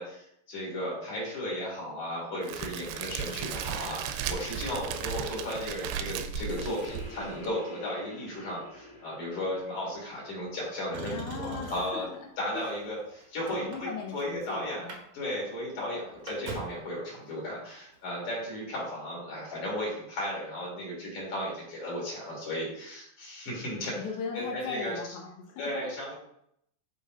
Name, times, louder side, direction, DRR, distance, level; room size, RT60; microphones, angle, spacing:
voice 1, 0.0-12.1 12.4-24.0 24.3-24.9 25.6-26.1, left 1 dB, 50° left, -5 dB, 3.9 m, -35 dB
Crackle, 2.4-7.5, right 8 dB, 90° right, 2.5 m, -36 dB
sound 1, 6.5-11.5, left 2 dB, 30° left, 2.2 m, -47 dB
Motor vehicle (road), 10.9-12.1 12.8-14.4 14.7-15.0 15.3-15.4 15.8-16.9 17.9-18.0, right 3 dB, 70° right, 1.3 m, -42 dB
voice 2, 11.1-12.3 12.5-12.7 13.5-15.0 23.9-26.1, left 5 dB, 80° left, 0 dB, 2.8 m, -39 dB
10.5 x 4.3 x 2.5 m, 0.74 s
omnidirectional pair, 4.4 m